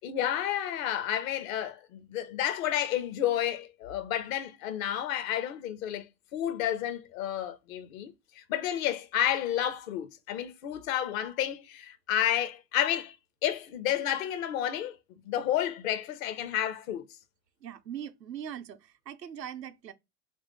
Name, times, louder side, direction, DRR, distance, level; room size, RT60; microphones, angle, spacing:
voice 1, 0.0-6.1 6.3-13.2 13.4-15.0 15.3-17.1, left 11 dB, 55° left, 0.7 m, -31 dB
voice 2, 17.6-19.9, right 9 dB, 85° right, 0.6 m, -41 dB
3.0 x 2.6 x 3.6 m
figure-of-eight pair, 85°, 49 cm